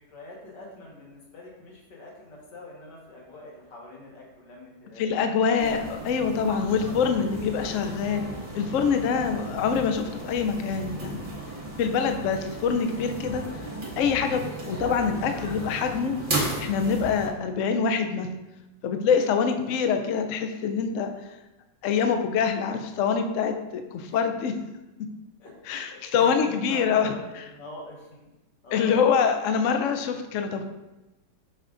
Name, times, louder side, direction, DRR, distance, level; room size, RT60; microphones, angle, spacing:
voice 1, 0.0-5.5 9.2-9.6 19.5-20.0 24.1-24.2 25.4-28.3 28.6-29.1, left 2 dB, 85° left, -3 dB, 2.1 m, -45 dB
voice 2, 5.0-8.3 8.5-11.3 11.8-13.4 14.0-16.1 16.6-18.3 18.8-21.1 21.8-24.5 25.7-27.1 28.7-30.6, left 6 dB, 70° left, 6 dB, 0.7 m, -25 dB
sound 1, 5.6-17.3, right 2 dB, 35° right, 1.2 m, -35 dB
7.3 x 5.5 x 2.5 m, 1.0 s
omnidirectional pair, 1.8 m